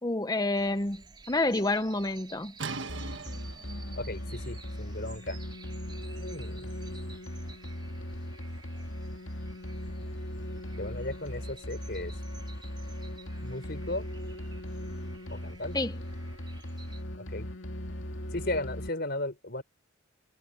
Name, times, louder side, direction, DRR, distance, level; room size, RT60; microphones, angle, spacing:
voice 1, 0.0-2.5 15.7-16.0, left 2 dB, 20° left, 0.8 m, -29 dB
sound 1, 0.5-17.0, right 4 dB, 20° right, 5.0 m, -53 dB
sound 2, 2.6-8.2, right 4 dB, 60° right, 1.4 m, -44 dB
sound 3, 2.9-18.9, left 1 dB, 65° left, 2.4 m, -38 dB
voice 2, 4.0-5.4 6.2-6.6 10.8-12.1 13.4-14.1 15.3-15.8 17.2-17.5 18.3-19.6, left 1 dB, 50° left, 5.1 m, -35 dB
head